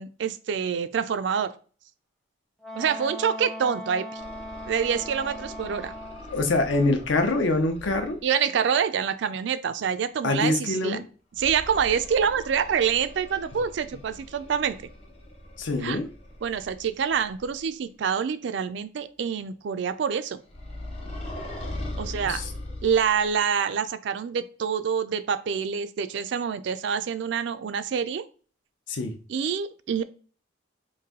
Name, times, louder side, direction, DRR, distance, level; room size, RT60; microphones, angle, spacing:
voice 1, 0.0-1.5 2.7-4.2 4.7-5.9 8.2-11.0 11.3-14.9 15.8-16.0 16.4-20.4 22.0-22.4 22.8-28.3 29.3-30.0, right 7 dB, 65° right, 12 dB, 0.3 m, -26 dB
Wind instrument woodwind instrument, 2.6-6.3, equal, ahead, 0.5 m, -39 dB
sound 1, 4.2-8.2 11.3-17.7 20.5-23.4, left 1 dB, 30° left, 0.9 m, -40 dB
voice 2, 6.3-8.2 10.2-11.0 15.6-16.1 22.3-22.4 28.9-29.1, left 2 dB, 70° left, 6 dB, 0.7 m, -24 dB
3.2 x 2.6 x 3.6 m, 0.39 s
head